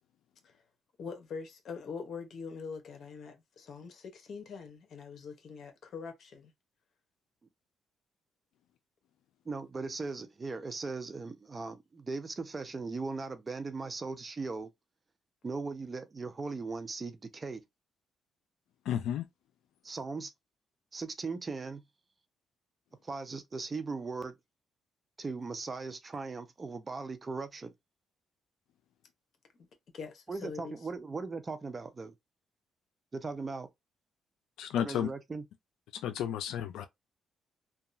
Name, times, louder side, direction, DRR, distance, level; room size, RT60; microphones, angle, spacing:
voice 1, 1.0-6.5 29.9-30.8, left 5 dB, 60° left, 0.9 m, -43 dB
voice 2, 9.5-14.7 15.4-17.6 19.8-20.3 20.9-21.8 23.0-24.3 25.2-27.7 30.3-32.1 33.1-33.7 34.8-35.4, right 4 dB, 30° right, 0.5 m, -38 dB
voice 3, 18.9-19.3 34.6-35.1 36.0-36.9, left 10 dB, 85° left, 0.4 m, -32 dB
2.7 x 2.3 x 2.5 m
cardioid pair, 90°, 0 cm